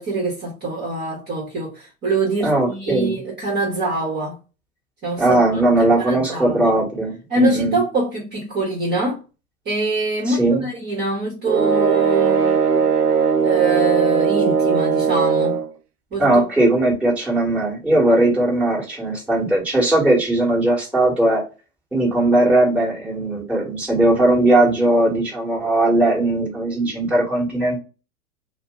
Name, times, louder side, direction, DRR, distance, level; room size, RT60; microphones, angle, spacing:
voice 1, 0.0-4.4 5.0-5.6 6.0-6.8 7.3-9.2 9.6-12.9 13.4-15.6 16.1-16.3, right 2 dB, 20° right, 1.0 m, -24 dB
voice 2, 2.4-3.1 5.2-7.8 10.3-10.6 16.2-21.4 21.9-27.8, right 2 dB, 5° right, 1.3 m, -18 dB
sound 1, 11.4-15.7, right 6 dB, 90° right, 0.7 m, -18 dB
2.7 x 2.0 x 3.5 m
hypercardioid pair, 115°, 44 cm